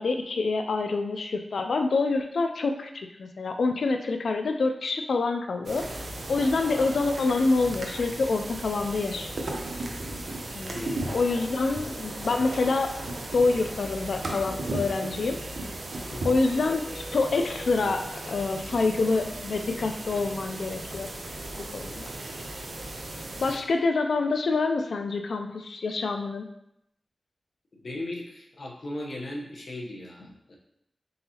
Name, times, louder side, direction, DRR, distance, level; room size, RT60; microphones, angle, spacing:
voice 1, 0.0-5.9 6.3-9.3 10.5-10.8 11.1-13.0 13.3-15.4 16.2-21.1 21.7-22.1 23.4-26.5, left 3 dB, 85° left, 5 dB, 0.3 m, -26 dB
sound 1, 5.6-23.6, right 1 dB, 75° right, 0.7 m, -36 dB
voice 2, 10.7-11.4 16.1-16.2 27.7-30.5, left 1 dB, 65° left, -1 dB, 0.8 m, -37 dB
3.9 x 3.8 x 2.8 m, 0.80 s
cardioid pair, 55°, 0 cm